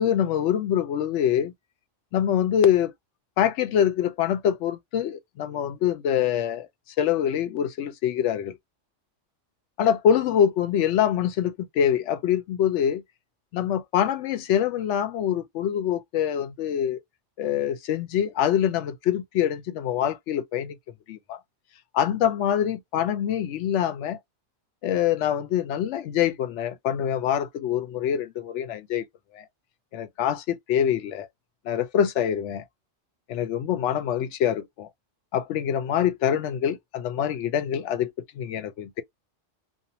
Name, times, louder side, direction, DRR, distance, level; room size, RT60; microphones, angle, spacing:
voice 1, 0.0-1.5 2.1-2.9 3.4-6.7 7.0-8.6 9.8-13.0 13.5-17.0 17.4-20.7 21.1-21.4 21.9-24.2 24.8-29.1 29.3-29.5 29.9-31.3 31.7-32.6 33.3-34.9 35.3-39.0, left 9 dB, 75° left, 0.9 m, -25 dB
2.6 x 2.1 x 2.8 m
omnidirectional pair, 1.2 m